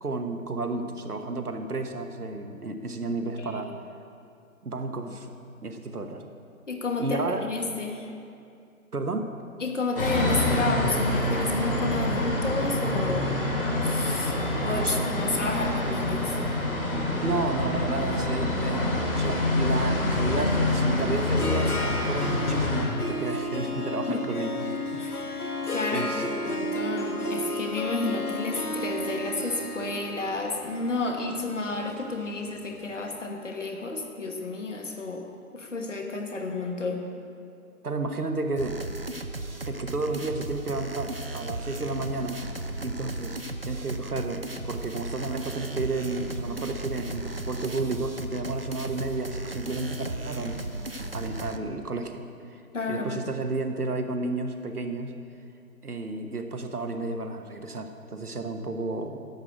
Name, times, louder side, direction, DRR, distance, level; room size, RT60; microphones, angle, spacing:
voice 1, 0.0-3.7 4.6-5.3 5.6-6.3 7.0-7.4 8.9-9.3 14.8-15.0 17.2-25.4 25.9-26.3 37.8-38.8 39.7-42.4 42.8-50.6 51.1-52.6 52.9-55.1 55.8-59.2, right 3 dB, 85° right, 6 dB, 1.3 m, -32 dB
voice 2, 6.7-8.1 9.6-13.3 13.8-14.3 14.6-16.4 24.1-24.2 24.7-25.3 25.7-35.3 35.5-37.0 52.7-53.2, left 3 dB, 55° left, 3 dB, 1.3 m, -31 dB
sound 1, 10.0-22.8, left 2 dB, 40° left, 2.0 m, -26 dB
Harp, 20.7-32.8, left 1 dB, 85° left, 1.4 m, -33 dB
sound 2, 38.6-51.6, right 2 dB, 45° right, 0.4 m, -35 dB
11.0 x 6.3 x 8.1 m, 2.5 s
figure-of-eight pair, 155°, 44 cm